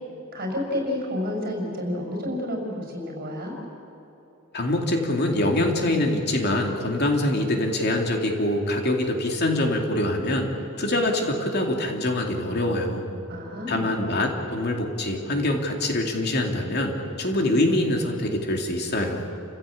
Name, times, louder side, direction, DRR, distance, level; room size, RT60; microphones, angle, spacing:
voice 1, 0.3-3.6 13.3-13.9, left 1 dB, 45° right, 0 dB, 6.0 m, -30 dB
voice 2, 4.5-10.5 10.8-13.0 13.7-19.2, left 1 dB, 50° left, 2 dB, 2.7 m, -24 dB
30.0 x 15.5 x 8.6 m, 2.9 s
head